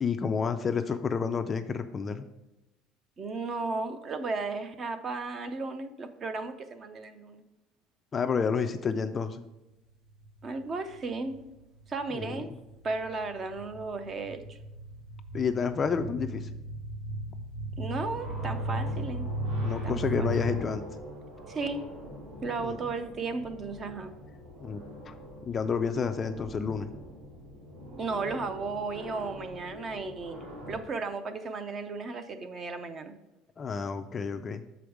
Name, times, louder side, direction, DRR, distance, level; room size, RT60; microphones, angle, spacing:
voice 1, 0.0-2.3 8.1-9.4 12.1-12.4 15.3-16.5 19.6-20.8 22.6-22.8 24.6-25.1 25.5-26.9 33.6-34.6, left 6 dB, 20° left, 9 dB, 0.3 m, -30 dB
voice 2, 3.2-7.4 10.4-11.5 11.9-12.5 12.8-14.6 17.8-19.3 19.8-20.0 21.5-21.9 22.4-24.1 28.0-33.1, right 3 dB, 25° right, 10 dB, 0.5 m, -35 dB
sound 1, 10.1-11.0 11.3-20.6, equal, 55° right, 2.1 m, -35 dB
sound 2, 18.2-30.8, left 1 dB, 75° right, 2.6 m, -45 dB
6.9 x 5.0 x 4.7 m, 0.99 s
cardioid pair, 160°, 0 cm